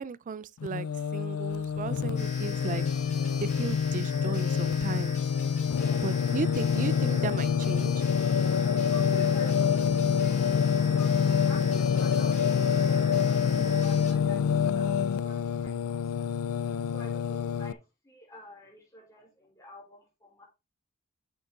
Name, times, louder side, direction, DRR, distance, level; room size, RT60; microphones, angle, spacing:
voice 1, 0.0-2.8 3.4-5.2 6.0-8.0, right 5 dB, 35° right, 0.3 m, -35 dB
Singing, 0.6-17.7, left 7 dB, 75° left, 0.4 m, -26 dB
sound 1, 2.2-14.1, left 3 dB, 35° left, 3.5 m, -44 dB
voice 2, 5.7-6.2 8.9-10.4 10.9-16.3 16.5-20.4, left 1 dB, 15° left, 4.1 m, -50 dB
7.8 x 6.8 x 3.6 m
head